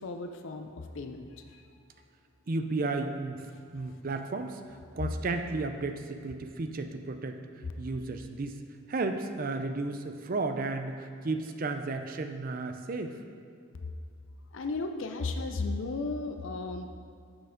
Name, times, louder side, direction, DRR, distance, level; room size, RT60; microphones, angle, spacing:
voice 1, 0.0-1.6 3.9-4.0 13.7-13.9 14.5-16.9, left 3 dB, 65° left, 6 dB, 0.5 m, -35 dB
voice 2, 2.5-3.5 3.7-8.6 8.9-13.2, right 3 dB, 40° right, 6 dB, 0.5 m, -33 dB
7.8 x 6.4 x 5.1 m, 2.3 s
head